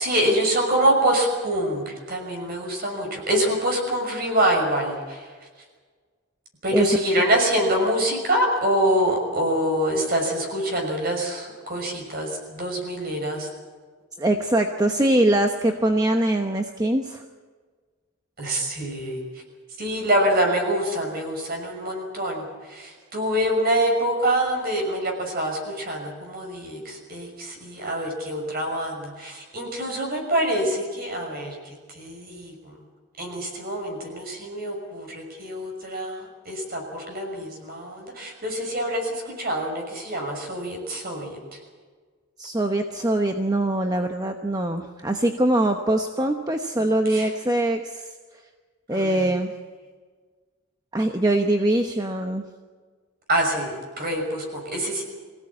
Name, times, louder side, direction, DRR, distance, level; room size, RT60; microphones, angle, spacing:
voice 1, 0.0-5.3 6.6-13.5 18.4-19.4 19.8-32.8 33.2-41.6 47.1-47.3 48.9-49.3 53.3-55.0, right 1 dB, 45° right, 2 dB, 6.1 m, -25 dB
voice 2, 14.2-17.2 42.4-48.1 48.9-49.5 50.9-52.5, right 1 dB, 15° right, 4 dB, 0.9 m, -23 dB
24.5 x 16.5 x 8.6 m, 1.5 s
head